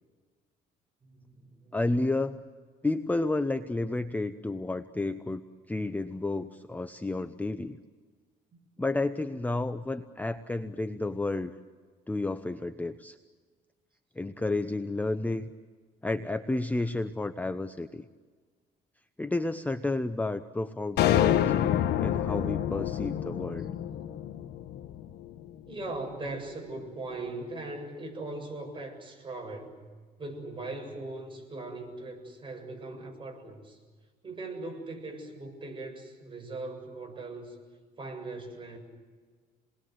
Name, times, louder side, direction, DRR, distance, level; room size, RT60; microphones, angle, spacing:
voice 1, 1.0-1.8 25.7-29.8 30.2-33.8 34.2-37.6 38.0-38.8, right 2 dB, 30° right, 3 dB, 7.7 m, -40 dB
voice 2, 1.7-2.4 2.8-5.4 5.7-7.8 8.8-11.5 12.1-13.2 14.2-15.4 16.0-18.0 19.2-21.5 22.0-23.7, left 2 dB, 10° left, 9 dB, 0.9 m, -31 dB
sound 1, 21.0-25.4, left 11 dB, 75° left, 1.4 m, -27 dB
29.0 x 21.0 x 8.0 m, 1.5 s
cardioid pair, 110°, 17 cm